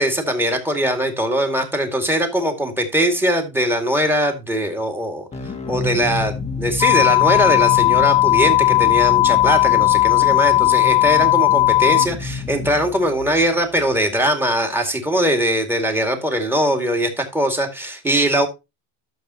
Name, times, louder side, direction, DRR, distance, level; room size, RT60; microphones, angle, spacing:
voice 1, 0.0-5.2 5.7-18.5, equal, 5° right, 2.2 m, -21 dB
sound 1, 5.3-14.0, left 4 dB, 15° left, 1.2 m, -29 dB
sound 2, 6.8-12.1, left 17 dB, 55° left, 0.6 m, -16 dB
12.5 x 7.0 x 2.9 m
supercardioid pair, 135°, 41 cm